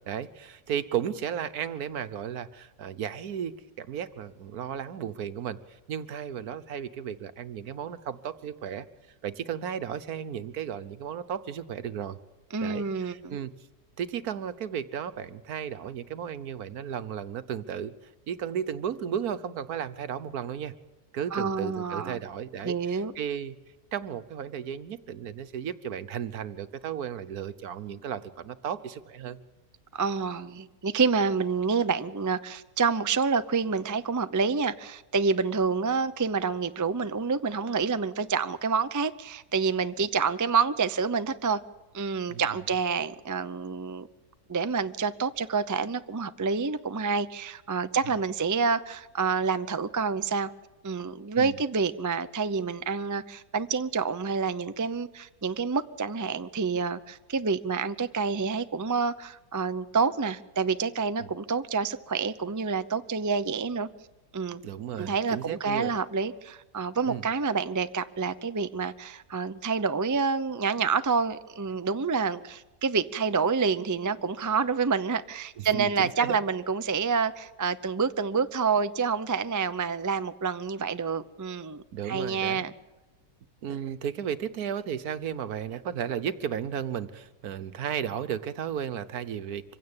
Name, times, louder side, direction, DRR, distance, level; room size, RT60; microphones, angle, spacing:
voice 1, 0.1-8.9 9.2-12.2 12.6-13.5 14.0-17.9 18.3-20.7 21.1-23.5 23.9-29.4 42.3-42.4 51.3-51.6 61.2-61.3 64.6-65.9 67.0-67.2 75.6-76.4 81.9-82.6 83.6-89.6, right 8 dB, 70° right, 1.5 m, -34 dB
voice 2, 12.5-13.4 21.3-22.2 22.6-23.1 29.9-41.6 41.9-44.1 44.5-50.5 50.8-63.9 64.3-64.6 65.0-82.7, right 5 dB, 30° right, 0.3 m, -28 dB
25.5 x 16.5 x 8.9 m
omnidirectional pair, 1.7 m